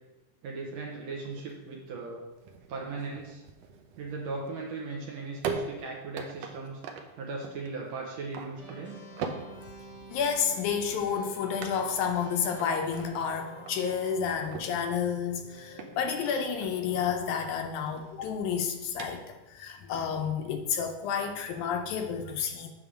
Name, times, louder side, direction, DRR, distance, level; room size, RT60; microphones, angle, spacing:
voice 1, 0.4-2.2 2.7-3.4 4.0-6.8 7.2-9.0, right 3 dB, 70° right, -1 dB, 1.8 m, -38 dB
sound 1, 0.7-19.6, right 5 dB, 85° right, 1.4 m, -43 dB
sound 2, 8.6-17.9, right 1 dB, ahead, 0.8 m, -49 dB
voice 2, 10.1-22.7, left 7 dB, 80° left, 5 dB, 1.9 m, -30 dB
8.6 x 3.3 x 6.2 m, 1.1 s
omnidirectional pair, 3.7 m